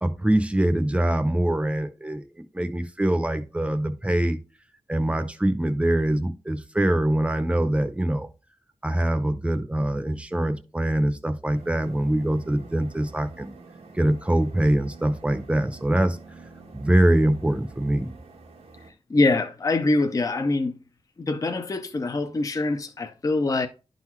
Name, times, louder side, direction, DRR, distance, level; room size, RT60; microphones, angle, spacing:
voice 1, 0.0-2.2 2.5-4.4 4.9-8.3 8.8-13.5 14.0-16.2 16.7-18.1, right 1 dB, 10° right, 0.7 m, -23 dB
sound 1, 11.5-18.9, right 3 dB, 85° right, 1.3 m, -47 dB
voice 2, 19.1-20.7 21.2-23.7, left 2 dB, 35° left, 0.6 m, -24 dB
11.0 x 3.9 x 3.0 m
wide cardioid pair, 105°, 10 cm